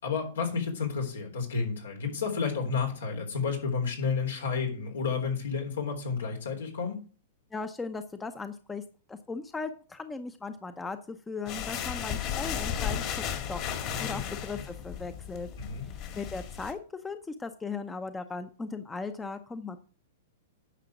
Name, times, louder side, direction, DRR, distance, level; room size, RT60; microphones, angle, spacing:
voice 1, 0.0-7.0 13.9-14.4 15.6-15.8, left 5 dB, 90° left, 2 dB, 3.6 m, -31 dB
voice 2, 7.5-8.8 9.1-13.6 14.0-15.5 15.8-16.8 17.0-19.8, left 4 dB, 10° left, 9 dB, 0.7 m, -38 dB
sound 1, 11.5-16.7, left 9 dB, 45° left, 1.9 m, -34 dB
10.0 x 5.6 x 6.0 m, 0.39 s
hypercardioid pair, 135°, 0 cm